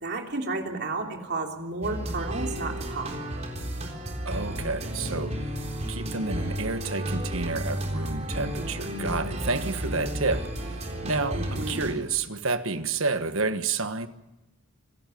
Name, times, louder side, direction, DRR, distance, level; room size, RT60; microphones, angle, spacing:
voice 1, 0.0-3.1 11.3-11.8, right 3 dB, 50° right, 3.2 m, -32 dB
sound 1, 1.8-11.9, equal, 30° right, 3.8 m, -32 dB
voice 2, 4.2-5.4 5.9-10.7 11.0-14.1, right 3 dB, 65° right, 1.4 m, -30 dB
26.5 x 13.5 x 9.3 m
head